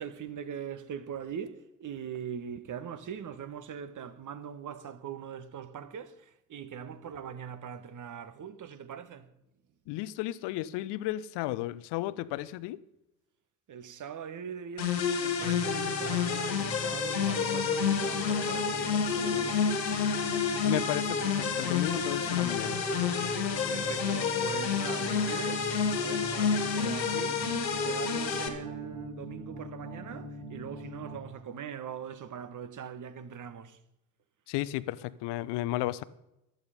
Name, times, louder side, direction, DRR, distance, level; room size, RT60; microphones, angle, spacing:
voice 1, 0.0-9.3 13.7-19.6 23.7-27.5 27.8-33.8, right 8 dB, 35° right, 1.6 m, -41 dB
voice 2, 9.9-12.8 20.6-22.8 34.5-36.0, left 15 dB, 55° left, 1.0 m, -33 dB
sound 1, 14.8-28.5, left 6 dB, 90° left, 1.7 m, -29 dB
sound 2, 15.4-31.2, equal, 70° right, 4.6 m, -42 dB
15.0 x 11.5 x 5.2 m
figure-of-eight pair, 60°, 50 cm